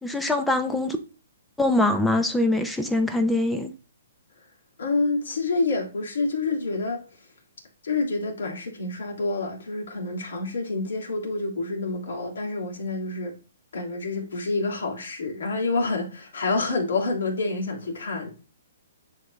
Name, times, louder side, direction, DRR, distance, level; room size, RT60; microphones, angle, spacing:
voice 1, 0.0-1.0 1.6-3.7, left 2 dB, 5° left, 0.5 m, -23 dB
voice 2, 4.8-7.0 7.8-13.3 13.7-18.3, left 3 dB, 70° left, 2.8 m, -28 dB
10.5 x 3.9 x 3.2 m
hypercardioid pair, 175°, 0 cm